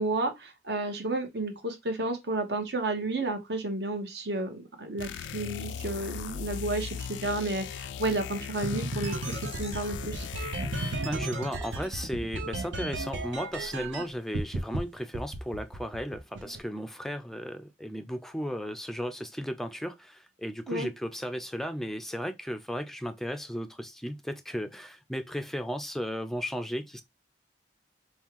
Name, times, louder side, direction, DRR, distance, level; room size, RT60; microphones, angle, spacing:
voice 1, 0.0-10.3 20.7-20.9, right 2 dB, 65° right, 1.2 m, -32 dB
sound 1, 5.0-11.2, left 7 dB, 80° left, 0.4 m, -38 dB
sound 2, 8.6-14.0 14.3-14.8 15.1-16.6, right 2 dB, 85° right, 0.9 m, -34 dB
voice 2, 11.0-27.0, equal, ahead, 0.4 m, -35 dB
5.4 x 2.3 x 3.0 m
head